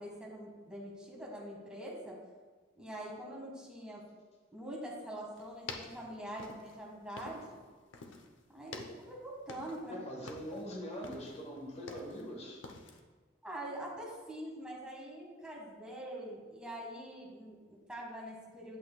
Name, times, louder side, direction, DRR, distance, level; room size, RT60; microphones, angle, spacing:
voice 1, 0.0-2.2 2.7-4.0 4.5-7.6 8.5-10.0 13.4-18.8, right 1 dB, 5° right, -4 dB, 1.6 m, -44 dB
sound 1, 5.4-7.6 7.9-8.3 8.6-9.9 10.2-10.7 11.0-12.3 12.6-13.0, left 3 dB, 80° left, 0.7 m, -48 dB
voice 2, 9.9-12.7, equal, 35° left, 0 dB, 1.4 m, -42 dB
8.4 x 8.2 x 2.3 m, 1.4 s
head